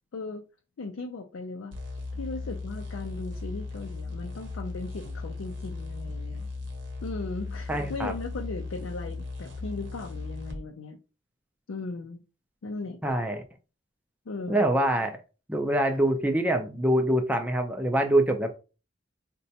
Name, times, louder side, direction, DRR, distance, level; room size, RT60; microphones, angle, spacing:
voice 1, 0.1-0.4 0.8-6.5 7.0-11.0 11.7-12.2 12.6-13.0 14.3-14.6, left 3 dB, 90° left, 0.4 m, -37 dB
sound 1, 1.7-10.6, left 3 dB, 65° right, 0.8 m, -37 dB
voice 2, 7.7-8.1 13.0-13.4 14.5-15.2 15.5-18.6, right 1 dB, 10° right, 0.4 m, -25 dB
4.0 x 2.2 x 2.7 m
head